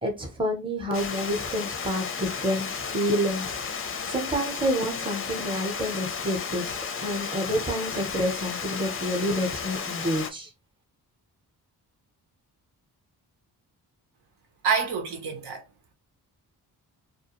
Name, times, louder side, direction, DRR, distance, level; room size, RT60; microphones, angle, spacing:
voice 1, 0.0-3.6 4.1-6.7 7.0-10.5, equal, 15° right, 0.7 m, -28 dB
Water, 0.9-10.3, left 6 dB, 35° left, 0.4 m, -33 dB
voice 2, 14.6-15.6, right 6 dB, 80° right, 0.8 m, -27 dB
2.4 x 2.2 x 2.8 m
cardioid pair, 95°, 40 cm